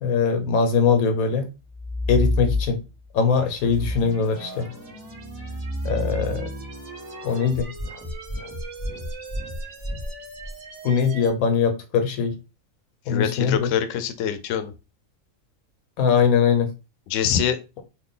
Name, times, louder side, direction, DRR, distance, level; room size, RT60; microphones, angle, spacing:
voice 1, 0.0-1.5 2.1-2.8 3.1-4.7 5.8-6.5 7.2-7.7 10.8-12.3 13.1-13.7 16.0-16.7, left 6 dB, 90° left, 6 dB, 1.2 m, -21 dB
sound 1, 1.6-3.0 3.6-10.5, left 1 dB, 15° left, 0.5 m, -30 dB
sound 2, 3.3-11.3, right 4 dB, 65° right, 1.0 m, -42 dB
voice 2, 13.1-14.7 17.1-17.6, left 8 dB, 70° left, 9 dB, 0.9 m, -24 dB
3.2 x 2.2 x 3.8 m, 0.29 s
omnidirectional pair, 1.5 m